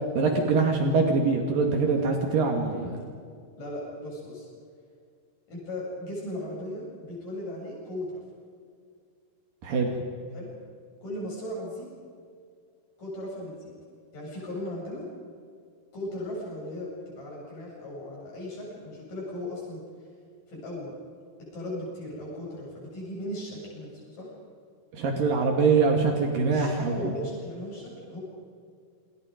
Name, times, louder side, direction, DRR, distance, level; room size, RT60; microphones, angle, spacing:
voice 1, 0.2-2.8 9.6-9.9 24.9-26.9, right 4 dB, 65° right, 2 dB, 3.7 m, -23 dB
voice 2, 3.6-4.5 5.5-8.2 10.3-10.5 11.0-11.9 13.0-13.5 14.1-15.1 15.9-19.8 20.5-20.9 21.4-24.3 26.5-28.2, left 1 dB, 60° left, -4 dB, 9.4 m, -37 dB
28.5 x 26.0 x 5.2 m, 2.2 s
omnidirectional pair, 4.4 m